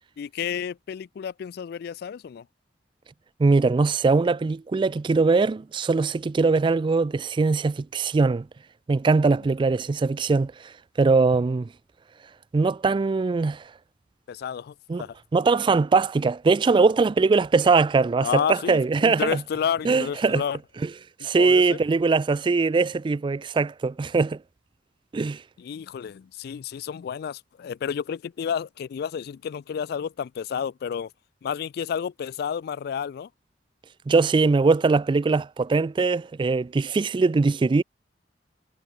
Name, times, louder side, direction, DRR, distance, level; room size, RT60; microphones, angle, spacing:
voice 1, 0.2-2.4 11.3-11.4 14.3-15.2 18.2-20.6 21.4-21.8 25.6-31.1 31.4-33.3, left 7 dB, 60° left, 0.3 m, -31 dB
voice 2, 3.4-8.5 8.9-10.5 11.0-11.7 12.5-13.6 14.9-15.0 15.3-19.4 19.8-20.4 20.8-20.9 21.2-24.4 25.1-25.4 34.1-37.8, right 4 dB, 25° right, 0.3 m, -21 dB
head